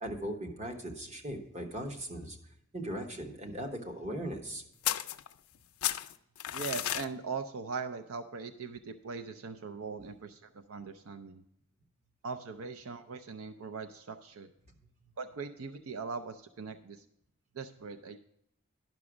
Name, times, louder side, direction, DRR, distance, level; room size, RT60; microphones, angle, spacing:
voice 1, 0.0-2.4 2.7-4.6, right 1 dB, 30° right, 3 dB, 1.1 m, -38 dB
sound 1, 4.8-5.6 5.8-7.1, left 13 dB, 80° left, 0.4 m, -33 dB
voice 2, 6.5-11.4 12.2-14.5 15.2-17.0 17.5-18.2, right 5 dB, 70° right, 8 dB, 0.5 m, -40 dB
10.5 x 6.1 x 4.9 m, 0.76 s
head